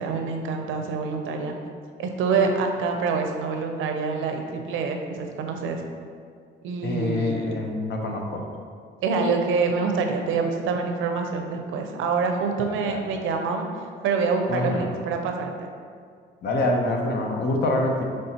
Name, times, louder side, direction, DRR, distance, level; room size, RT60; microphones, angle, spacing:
voice 1, 0.0-1.6 2.0-5.8 6.6-7.5 9.0-13.7 14.0-15.7, right 4 dB, 85° right, 4 dB, 0.5 m, -26 dB
voice 2, 6.8-8.4 12.8-13.0 14.5-14.9 16.4-18.0, left 2 dB, 60° left, 1 dB, 0.7 m, -25 dB
5.4 x 3.2 x 2.9 m, 2.1 s
cardioid pair, 90°, 20 cm